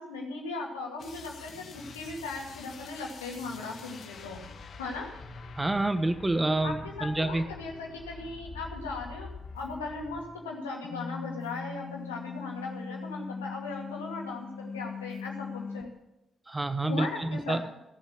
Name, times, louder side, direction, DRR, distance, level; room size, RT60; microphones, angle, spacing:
voice 1, 0.0-4.4 4.8-5.1 6.6-9.3 9.5-15.9 16.9-17.6, left 3 dB, 90° left, -1 dB, 2.3 m, -38 dB
sound 1, 1.0-10.5 10.8-15.8, left 5 dB, 60° left, 1.6 m, -43 dB
voice 2, 5.6-7.4 16.5-17.6, right 2 dB, 20° right, 9 dB, 1.3 m, -28 dB
17.5 x 7.3 x 7.3 m, 0.89 s
hypercardioid pair, 40°, 0 cm